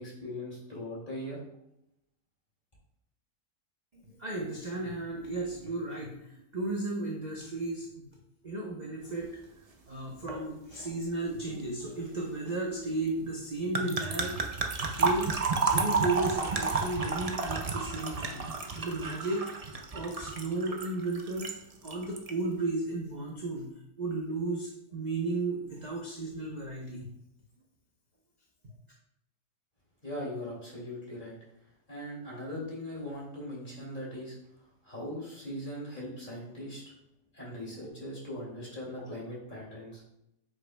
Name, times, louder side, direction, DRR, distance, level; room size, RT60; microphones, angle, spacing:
voice 1, 0.0-1.4 30.0-31.3 31.9-34.4 34.8-36.8 37.3-40.0, left 1 dB, 30° left, -5 dB, 2.7 m, -40 dB
voice 2, 4.0-8.1 8.4-14.4 15.0-18.5 18.8-19.5 19.9-27.1, right 2 dB, 35° right, -2 dB, 0.9 m, -34 dB
sound 1, 10.3-10.4 10.7-11.1 13.7-21.6 21.8-22.3, right 4 dB, 70° right, 0.3 m, -31 dB
8.1 x 6.3 x 2.3 m, 0.82 s
omnidirectional pair, 1.7 m